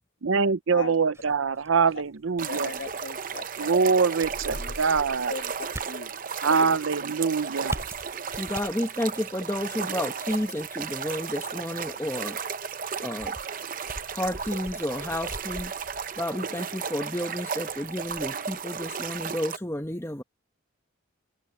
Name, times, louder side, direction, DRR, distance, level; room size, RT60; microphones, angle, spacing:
voice 1, 0.2-2.7 3.6-5.3 6.4-7.7, right 5 dB, 80° right, 0.7 m, -24 dB
sound 1, 1.1-19.2, right 1 dB, 15° right, 3.6 m, -45 dB
sound 2, 2.4-19.6, right 6 dB, 45° right, 0.7 m, -34 dB
voice 2, 2.5-3.7 4.6-4.7 5.3-6.1 6.4-6.8, left 3 dB, 65° left, 1.3 m, -38 dB
voice 3, 8.4-12.4 13.0-13.3 14.1-15.7 16.2-20.2, left 1 dB, 15° left, 1.2 m, -31 dB
head